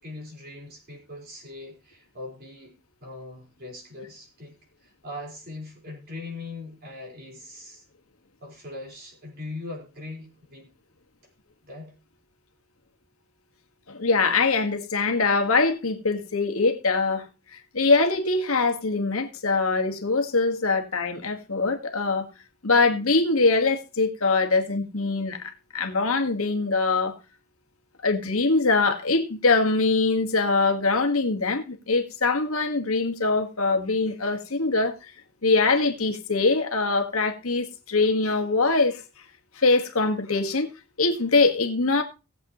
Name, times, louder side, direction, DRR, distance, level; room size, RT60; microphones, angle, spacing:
voice 1, 0.0-2.7 3.0-4.5 4.8-7.8 8.4-10.7 11.7-11.9, left 2 dB, 45° right, 4.6 m, -40 dB
voice 2, 13.9-17.2 17.5-22.3 22.6-27.1 28.0-34.9 35.4-39.0 39.5-40.7 41.0-42.0, left 3 dB, 80° left, 1.7 m, -23 dB
18.5 x 7.8 x 3.0 m
head